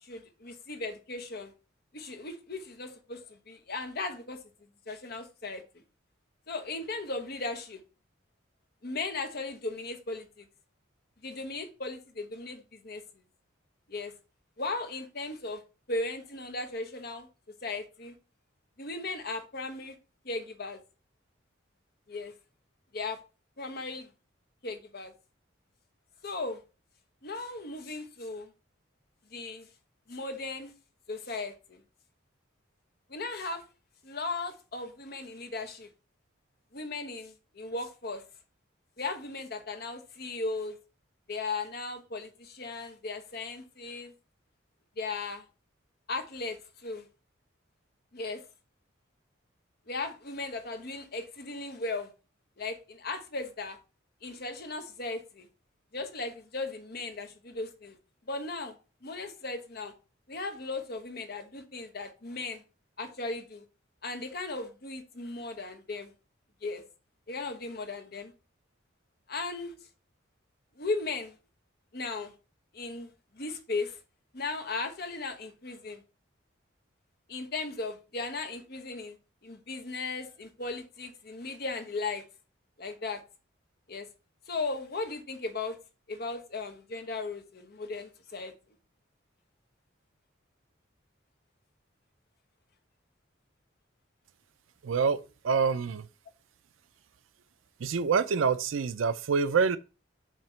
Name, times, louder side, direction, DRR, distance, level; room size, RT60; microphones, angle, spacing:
voice 1, 0.0-1.5 1.9-4.4 4.9-5.6 6.5-7.8 8.8-10.5 11.2-13.0 13.9-14.1 14.6-15.6 15.9-17.3 17.6-18.1 18.8-20.0 20.2-20.8 22.1-22.3 22.9-23.2 23.6-24.1 24.6-25.1 26.2-26.6 27.2-28.5 29.3-29.7 30.1-30.7 31.1-31.8 33.1-33.6 34.0-35.9 36.7-38.2 39.0-40.8 41.3-44.1 45.0-45.4 46.1-47.1 48.1-48.4 49.9-52.1 52.6-53.8 54.2-55.5 55.9-57.9 58.3-58.8 59.0-59.9 60.3-62.6 63.0-63.6 64.0-66.1 66.6-66.8 67.3-68.3 69.3-69.7 70.8-71.4 71.9-72.3 72.7-74.0 74.3-76.0 77.3-79.2 79.4-82.2 82.8-83.2 83.9-84.1 84.5-85.8 86.1-88.5, left 3 dB, 50° left, 1.1 m, -37 dB
voice 2, 94.8-95.2 95.4-96.0 97.8-99.8, right 5 dB, 80° right, 0.5 m, -26 dB
7.4 x 2.9 x 5.6 m
head